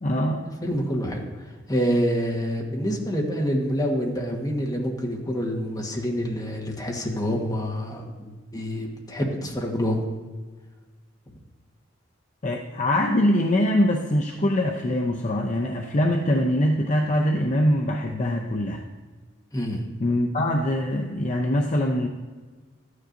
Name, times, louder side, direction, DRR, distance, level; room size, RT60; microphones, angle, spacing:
voice 1, 0.0-0.5 12.4-18.8 20.0-22.1, left 1 dB, 40° left, 1 dB, 0.6 m, -23 dB
voice 2, 0.6-10.0 19.5-19.9, equal, 20° left, 0 dB, 1.3 m, -27 dB
13.0 x 9.6 x 2.6 m, 1.4 s
head